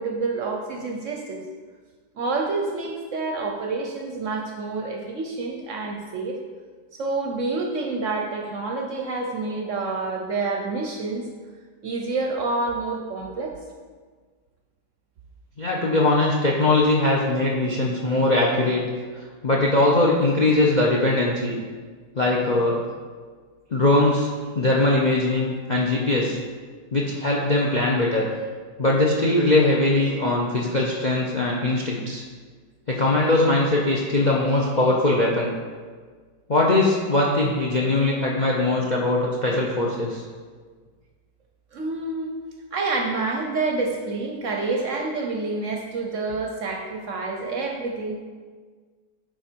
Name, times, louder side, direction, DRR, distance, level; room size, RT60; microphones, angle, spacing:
voice 1, 0.0-1.4 2.1-6.4 6.9-11.3 11.8-13.5 41.7-42.3 42.7-48.2, right 3 dB, 60° right, 1 dB, 0.8 m, -28 dB
voice 2, 15.6-18.8 19.4-21.5 22.1-22.8 23.7-24.3 24.5-26.4 26.9-28.3 28.8-32.2 32.9-35.5 36.5-40.2, left 2 dB, 50° left, -2 dB, 0.5 m, -21 dB
9.3 x 4.0 x 4.4 m, 1.5 s
omnidirectional pair, 1.8 m